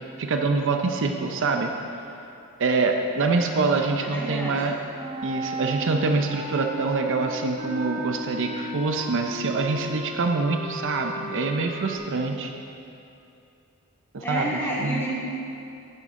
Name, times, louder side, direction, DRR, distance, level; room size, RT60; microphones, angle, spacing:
voice 1, 0.2-1.7 2.6-4.7 5.2-12.5 14.1-14.5 14.8-15.0, right 3 dB, 60° right, 4 dB, 0.6 m, -25 dB
voice 2, 4.0-4.6 14.2-15.2, equal, 10° left, -7 dB, 2.1 m, -29 dB
Wind instrument woodwind instrument, 4.9-12.0, right 1 dB, 30° right, 1.4 m, -35 dB
11.0 x 9.4 x 3.7 m, 2.7 s
head